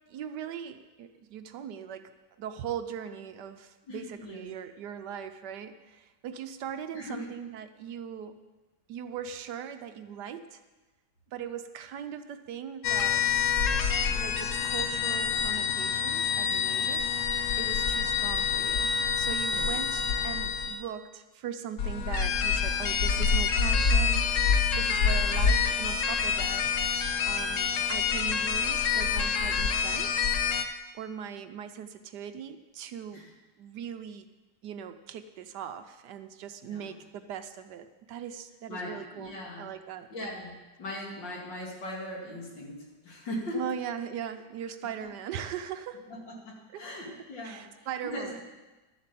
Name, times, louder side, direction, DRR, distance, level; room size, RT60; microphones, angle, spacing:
voice 1, 0.1-8.4 8.9-10.6 11.3-13.2 14.1-18.9 19.2-26.7 27.2-30.3 30.9-33.2 33.6-34.3 34.6-40.1 43.5-46.0 46.7-46.9 47.4-48.4, right 8 dB, 70° right, 9 dB, 1.2 m, -40 dB
voice 2, 3.9-4.5 6.9-7.2 19.5-19.8 33.1-33.3 36.6-36.9 38.7-39.7 40.1-43.7 45.0-45.1 46.1-48.4, left 1 dB, 75° left, -2 dB, 3.2 m, -39 dB
sound 1, 12.8-20.8 21.8-30.6, left 6 dB, 60° left, 0.9 m, -27 dB
12.0 x 7.6 x 7.4 m, 1.2 s
omnidirectional pair, 2.0 m